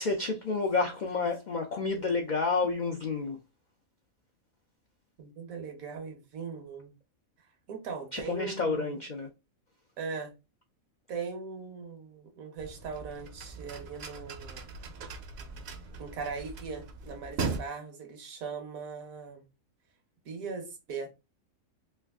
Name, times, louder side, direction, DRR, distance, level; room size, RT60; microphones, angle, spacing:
voice 1, 0.0-3.4 8.1-9.3, left 4 dB, 80° left, 0.4 m, -30 dB
voice 2, 5.2-6.9 7.7-9.0 10.0-10.3 11.1-14.7 15.7-19.5 20.2-21.1, right 5 dB, 80° right, 1.4 m, -39 dB
sound 1, 12.6-17.6, right 4 dB, 60° right, 0.7 m, -39 dB
3.3 x 2.3 x 3.3 m
omnidirectional pair, 1.4 m